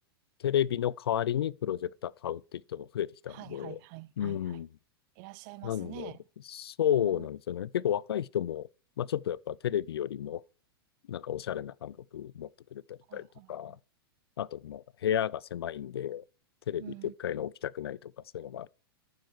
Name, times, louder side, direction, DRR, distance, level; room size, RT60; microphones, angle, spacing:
voice 1, 0.4-3.8 4.2-4.7 5.6-6.1 6.5-8.7 9.0-10.4 11.1-13.8 14.4-16.2 16.7-16.9 17.2-18.7, left 10 dB, 80° left, 0.4 m, -32 dB
voice 2, 3.3-4.6 5.2-6.2 7.0-7.3 13.1-13.8 16.8-17.1, right 21 dB, 50° right, 0.7 m, -47 dB
13.5 x 6.6 x 4.7 m
hypercardioid pair, 110°, 13 cm